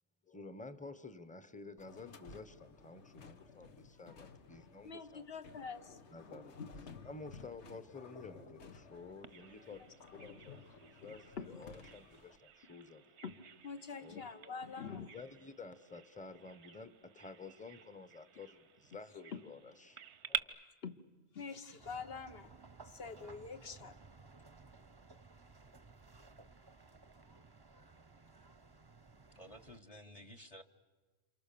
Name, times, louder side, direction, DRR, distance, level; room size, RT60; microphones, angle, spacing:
voice 1, 0.3-5.2 6.1-6.6 7.0-13.1 13.9-14.3 15.1-20.6, left 4 dB, 5° left, 13 dB, 0.9 m, -51 dB
sound 1, 1.8-12.4, left 4 dB, 85° left, 1.6 m, -55 dB
voice 2, 4.8-6.0 6.6-6.7 11.4-11.6 13.2-13.4 13.6-15.1 20.8-21.0 21.3-22.5 22.8-23.9, left 5 dB, 60° left, 10 dB, 1.4 m, -45 dB
Bird vocalization bird call bird song, 9.2-20.4, right 8 dB, 90° right, 1.3 m, -49 dB
sound 2, 21.8-29.8, right 4 dB, 25° right, 0.8 m, -58 dB
voice 3, 29.3-30.6, equal, 35° left, 11 dB, 1.2 m, -53 dB
29.0 x 27.5 x 6.9 m, 1.3 s
omnidirectional pair, 1.1 m